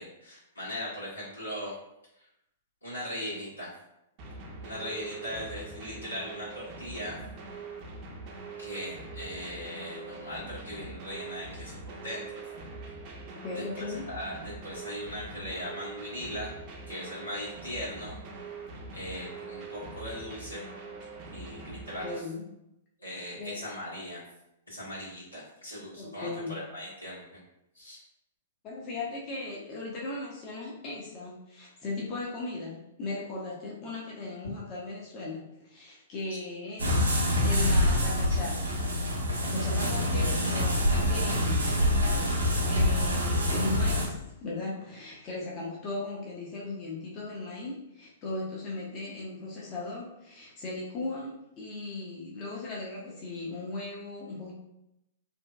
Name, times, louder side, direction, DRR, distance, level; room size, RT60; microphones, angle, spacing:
voice 1, 0.0-1.7 2.1-2.2 2.8-3.7 4.6-7.1 8.6-12.4 13.5-16.5 16.9-18.1 18.9-20.6 21.3-22.2 23.0-24.2 24.7-27.4 27.7-28.0, left 1 dB, 85° left, -9 dB, 1.3 m, -39 dB
sound 1, 4.2-22.2, right 3 dB, 35° right, 0.5 m, -43 dB
voice 2, 13.3-14.1 22.0-22.4 23.4-23.5 26.0-26.5 28.6-37.1 37.3-38.7 39.4-41.7 42.6-44.1 44.4-54.5, left 3 dB, 35° left, -4 dB, 0.5 m, -37 dB
sound 2, 36.8-44.1, left 1 dB, 80° right, 0.6 m, -26 dB
2.6 x 2.1 x 2.2 m, 0.87 s
figure-of-eight pair, 110°, 0 cm